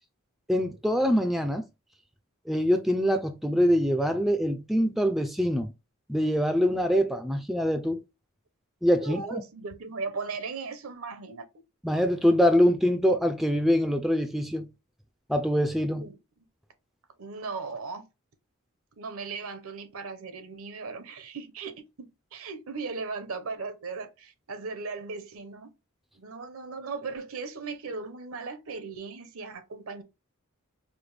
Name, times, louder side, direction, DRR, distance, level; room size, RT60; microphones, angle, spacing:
voice 1, 0.5-1.6 2.5-5.7 6.1-8.0 8.8-9.2 11.8-14.6 15.3-16.1, equal, ahead, 0.3 m, -24 dB
voice 2, 9.0-11.4 15.9-16.2 17.2-18.1 19.0-21.7 22.0-25.7 26.1-30.0, right 4 dB, 75° right, 0.7 m, -37 dB
5.0 x 2.1 x 3.1 m
head